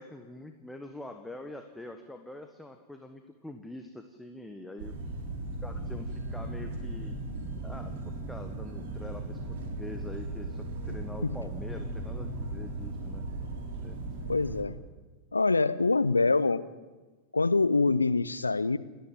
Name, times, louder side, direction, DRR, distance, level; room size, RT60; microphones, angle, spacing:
voice 1, 0.0-4.9 5.6-7.1 7.6-13.2 13.8-14.0, left 1 dB, 5° left, 6 dB, 1.4 m, -44 dB
sound 1, 4.8-14.6, right 2 dB, 50° right, 3.9 m, -37 dB
voice 2, 14.3-14.8 15.3-16.7 17.3-18.8, left 3 dB, 80° left, 16 dB, 0.7 m, -25 dB
29.0 x 10.5 x 9.3 m, 1.2 s
figure-of-eight pair, 90°, 0 cm